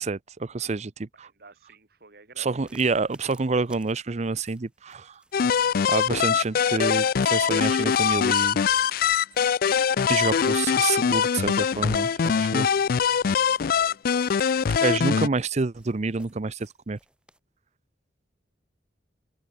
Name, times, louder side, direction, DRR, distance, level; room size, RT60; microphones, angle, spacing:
voice 1, 0.0-1.3 2.4-5.2 5.9-8.6 10.1-12.7 14.8-17.0, right 4 dB, 40° right, 0.6 m, -28 dB
voice 2, 1.2-2.7 12.5-12.8 13.7-14.2, right 3 dB, 60° right, 2.9 m, -53 dB
sound 1, 2.5-17.4, right 1 dB, 5° right, 3.2 m, -59 dB
sound 2, 5.3-15.3, left 7 dB, 55° left, 0.4 m, -22 dB
head